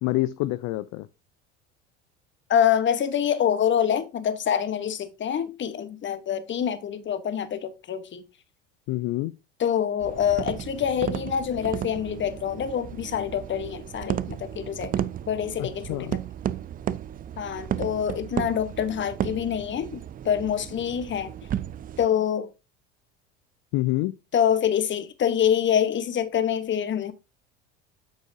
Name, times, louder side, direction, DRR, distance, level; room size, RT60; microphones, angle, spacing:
voice 1, 0.0-1.1 8.9-9.3 15.6-16.1 23.7-24.2, left 18 dB, 55° left, 0.5 m, -27 dB
voice 2, 2.5-8.2 9.6-14.9 15.3-16.1 17.4-20.0 20.2-21.3 22.0-22.5 24.3-27.1, left 9 dB, 35° left, 1.2 m, -26 dB
sound 1, 10.0-22.1, right 10 dB, 25° right, 0.4 m, -34 dB
8.1 x 6.2 x 2.7 m
hypercardioid pair, 80°, 34 cm